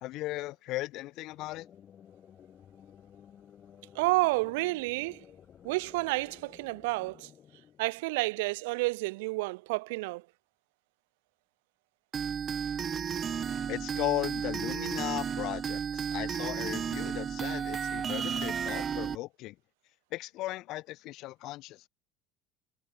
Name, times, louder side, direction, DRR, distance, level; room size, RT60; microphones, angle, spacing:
voice 1, 0.0-1.7 13.7-19.5 20.1-21.8, left 18 dB, 55° left, 0.8 m, -36 dB
sound 1, 1.1-8.7, left 9 dB, 30° left, 7.5 m, -55 dB
voice 2, 3.9-5.2 5.6-7.3 7.8-10.2, right 24 dB, 90° right, 0.6 m, -30 dB
sound 2, 12.1-19.2, right 7 dB, 25° right, 0.7 m, -33 dB
cardioid pair, 140°, 0 cm